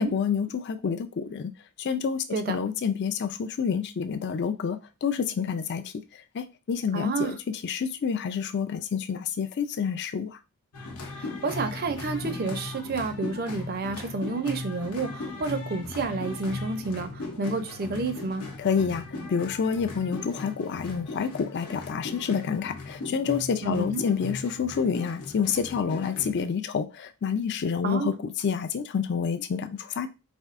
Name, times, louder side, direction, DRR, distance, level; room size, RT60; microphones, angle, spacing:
voice 1, 0.0-1.5 1.8-10.4 18.6-30.1, left 6 dB, 50° left, 0.4 m, -28 dB
voice 2, 6.9-7.4 11.1-18.5 23.6-24.0 27.8-28.1, right 3 dB, 45° right, 0.5 m, -30 dB
sound 1, 10.7-26.4, left 2 dB, 85° left, 0.9 m, -38 dB
4.3 x 2.6 x 2.4 m
head